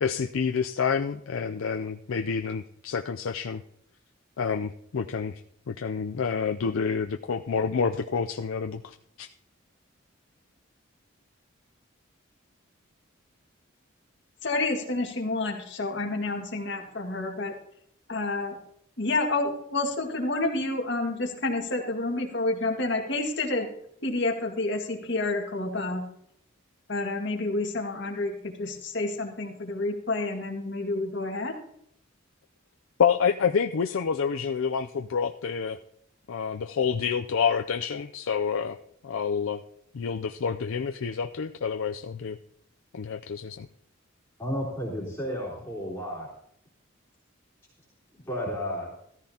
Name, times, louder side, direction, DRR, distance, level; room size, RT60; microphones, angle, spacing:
voice 1, 0.0-3.6 4.4-5.4 5.7-9.3 33.0-35.8 36.3-38.8 39.0-39.6 39.9-42.4 42.9-43.7, left 6 dB, 80° left, 7 dB, 0.4 m, -28 dB
voice 2, 14.4-17.5 18.1-18.6 19.0-23.7 24.0-26.0 26.9-31.5, left 2 dB, 55° left, 2 dB, 1.9 m, -29 dB
voice 3, 44.4-46.3 48.1-48.9, equal, 10° left, -8 dB, 3.5 m, -32 dB
14.5 x 14.0 x 2.8 m, 0.71 s
head